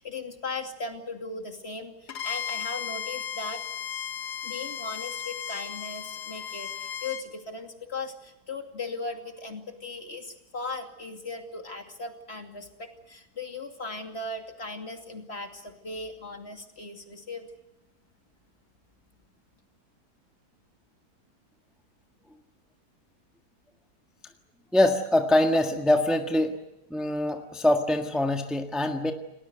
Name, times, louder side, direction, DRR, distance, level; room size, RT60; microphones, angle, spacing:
voice 1, 0.0-3.6 4.4-17.5, left 3 dB, 40° left, 4 dB, 2.9 m, -38 dB
Bowed string instrument, 2.1-7.3, left 8 dB, 90° left, 1.8 m, -35 dB
voice 2, 24.7-26.6 26.9-29.1, left 1 dB, ahead, 4 dB, 1.5 m, -24 dB
30.0 x 19.5 x 8.0 m, 0.91 s
omnidirectional pair, 1.7 m